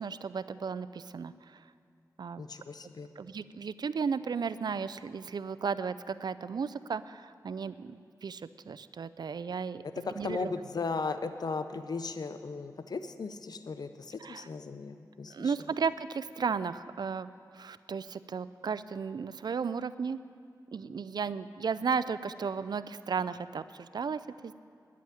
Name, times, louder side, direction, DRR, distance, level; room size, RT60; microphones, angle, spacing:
voice 1, 0.0-1.6 2.2-2.4 3.2-9.8 10.2-10.5 14.2-14.5 15.3-20.2 20.7-24.5, right 6 dB, 75° right, 15 dB, 0.4 m, -34 dB
voice 2, 2.4-3.1 10.0-15.5, left 4 dB, 70° left, 10 dB, 0.6 m, -36 dB
10.5 x 8.4 x 9.1 m, 2.3 s
cardioid pair, 50°, 7 cm